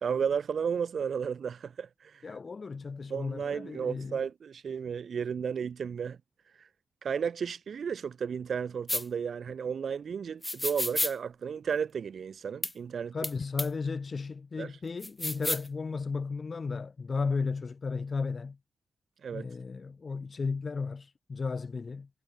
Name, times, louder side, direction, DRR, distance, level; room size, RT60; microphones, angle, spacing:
voice 1, 0.0-2.2 3.1-6.2 6.6-6.7 7.0-13.1 14.6-14.7 19.2-19.5, right 7 dB, 70° right, 1.6 m, -33 dB
voice 2, 2.2-4.2 13.1-18.6 19.3-22.1, left 4 dB, 45° left, 1.9 m, -34 dB
sound 1, 8.9-9.0 10.4-11.1 12.6-12.7 13.2-13.3 13.6-13.7 15.0-15.7, left 1 dB, 15° left, 1.5 m, -31 dB
cardioid pair, 70°, 0 cm